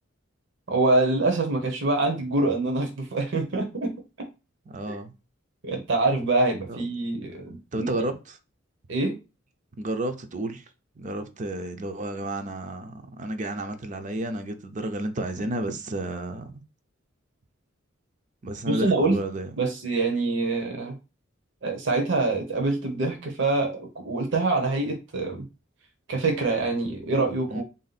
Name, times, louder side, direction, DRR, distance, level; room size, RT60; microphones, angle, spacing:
voice 1, 0.7-3.9 4.9-5.0 5.6-7.9 8.9-9.2 18.7-19.2 19.6-21.0 21.6-25.5 26.1-27.6, right 2 dB, 65° right, 0.8 m, -25 dB
voice 2, 4.7-5.1 6.7-6.8 7.7-8.4 9.8-10.6 11.0-16.6 18.4-19.5 27.5-27.6, right 1 dB, 40° right, 0.5 m, -31 dB
3.5 x 2.7 x 4.0 m
head